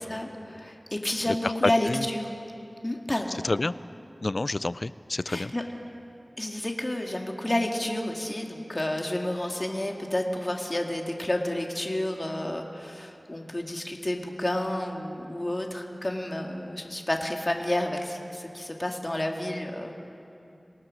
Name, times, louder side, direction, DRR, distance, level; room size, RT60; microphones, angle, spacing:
voice 1, 0.0-2.3 2.8-3.4 5.3-5.6 6.4-20.0, left 1 dB, 35° left, 2 dB, 2.0 m, -30 dB
voice 2, 1.3-2.1 3.4-3.7 4.2-5.5, left 2 dB, 60° left, 17 dB, 0.4 m, -28 dB
26.5 x 19.0 x 6.3 m, 2.8 s
wide cardioid pair, 55°, 0 cm